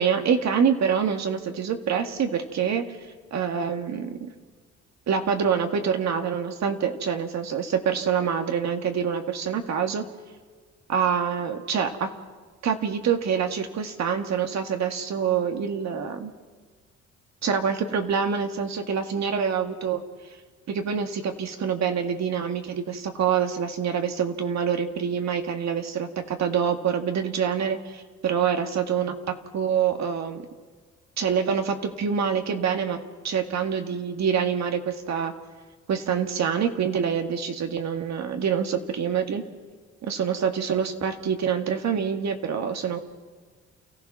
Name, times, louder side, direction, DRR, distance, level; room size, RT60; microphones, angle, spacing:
voice 1, 0.0-2.9 3.3-4.3 5.1-10.0 10.9-12.1 12.6-16.3 17.4-20.0 20.7-30.4 31.2-33.0 33.2-35.3 35.9-39.4 40.0-43.0, right 7 dB, 65° right, 5 dB, 2.0 m, -26 dB
29.5 x 15.0 x 6.1 m, 1.5 s
cardioid pair, 90°, 30 cm